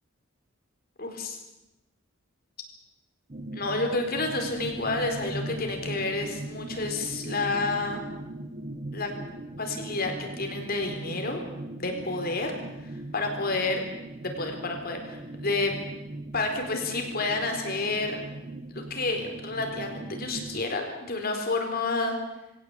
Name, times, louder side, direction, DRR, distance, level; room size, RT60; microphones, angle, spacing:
voice 1, 1.0-1.4 3.5-8.0 8.9-9.1 9.6-11.4 11.8-12.5 13.1-13.8 14.2-15.7 16.3-18.2 18.7-22.2, left 3 dB, 50° left, 4 dB, 4.4 m, -29 dB
sound 1, 3.3-20.6, right 2 dB, 35° right, 0.8 m, -39 dB
22.0 x 17.5 x 8.5 m, 0.95 s
head